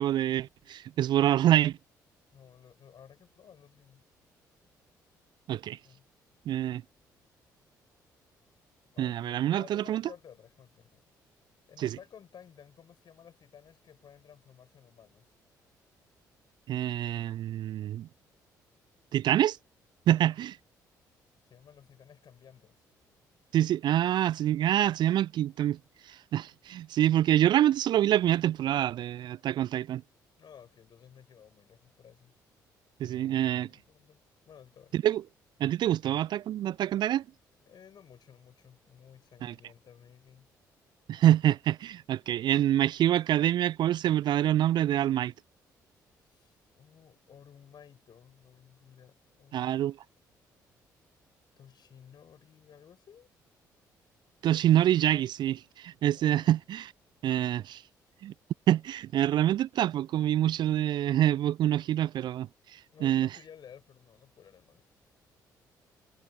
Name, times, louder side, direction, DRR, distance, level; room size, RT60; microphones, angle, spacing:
voice 1, 0.0-1.8 5.5-5.8 6.5-6.8 9.0-10.0 11.8-11.9 16.7-18.1 19.1-19.6 20.1-20.6 23.5-25.8 26.3-30.0 33.0-33.7 34.9-35.2 35.6-37.2 39.4-39.5 41.1-45.3 49.5-49.9 54.4-56.9 57.2-57.8 58.2-58.3 58.7-62.5 63.0-63.3, right 12 dB, 50° right, 0.5 m, -26 dB
voice 2, 2.3-4.0 5.8-6.1 8.9-11.1 11.7-15.3 21.5-22.8 30.4-32.3 33.1-34.2 34.5-35.0 37.6-40.5 46.3-49.8 51.6-53.3 56.1-56.6 62.9-64.8, left 8 dB, 45° left, 7.2 m, -55 dB
figure-of-eight pair, 45°, 10 cm